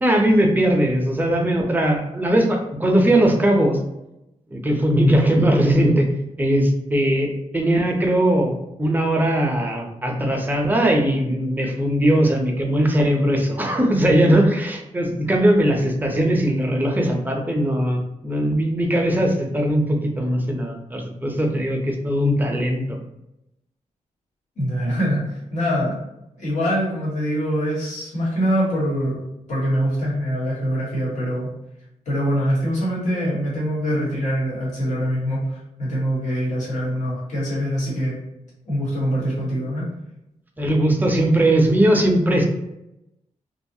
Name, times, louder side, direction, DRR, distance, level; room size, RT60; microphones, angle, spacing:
voice 1, 0.0-3.8 4.5-6.1 6.4-23.0 40.6-42.4, right 1 dB, 15° right, 2 dB, 0.4 m, -19 dB
voice 2, 24.6-26.0 26.4-29.2 29.5-31.5 32.0-38.2 38.6-39.8, equal, 70° left, -7 dB, 1.3 m, -24 dB
2.8 x 2.3 x 2.6 m, 0.87 s
wide cardioid pair, 135°, 13 cm